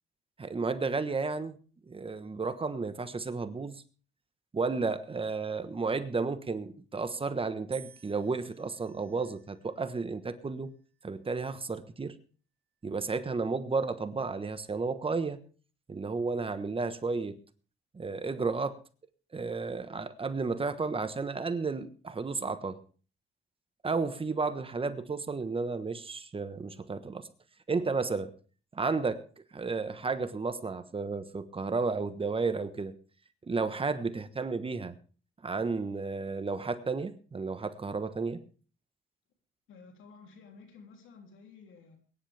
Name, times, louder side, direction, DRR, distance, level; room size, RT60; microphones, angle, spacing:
voice 1, 0.4-1.6 1.9-3.8 4.5-10.7 11.0-12.1 12.8-15.4 15.9-17.4 17.9-18.8 19.3-22.8 23.8-27.3 27.7-28.3 28.7-29.2 29.5-32.9 33.5-34.9 35.4-38.4, right 4 dB, 25° right, 1.3 m, -32 dB
sound 1, 7.7-9.9 10.7-11.3, right 7 dB, 55° right, 2.4 m, -56 dB
voice 2, 39.7-42.0, left 4 dB, 80° left, 3.2 m, -53 dB
22.5 x 10.5 x 3.4 m
cardioid pair, 90°, 20 cm